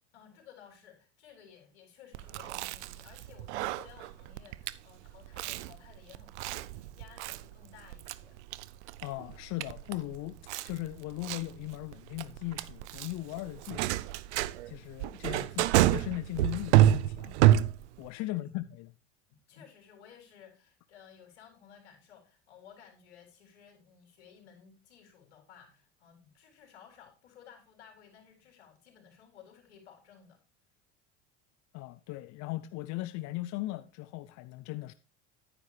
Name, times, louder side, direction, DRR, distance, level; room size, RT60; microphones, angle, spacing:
voice 1, 0.1-8.4 18.1-18.5 19.5-30.4, left 8 dB, 90° left, 4.0 m, -56 dB
Chewing mastication, 2.1-18.1, right 13 dB, 80° right, 0.6 m, -29 dB
voice 2, 9.0-10.4 10.6-14.0 14.7-17.4 18.0-18.9 31.7-34.9, left 17 dB, 55° left, 0.6 m, -38 dB
10.5 x 9.8 x 3.3 m
supercardioid pair, 95°, 34 cm